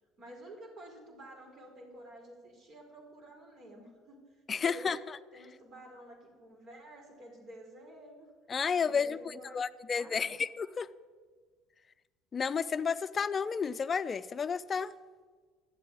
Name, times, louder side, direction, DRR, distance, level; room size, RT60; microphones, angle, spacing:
voice 1, 0.2-5.0 5.3-8.3 8.7-10.4, right 1 dB, 50° right, 5.0 m, -51 dB
voice 2, 4.5-5.0 8.5-10.9 12.3-14.9, left 6 dB, 35° left, 0.6 m, -31 dB
13.0 x 7.6 x 9.7 m
hypercardioid pair, 65°, 0 cm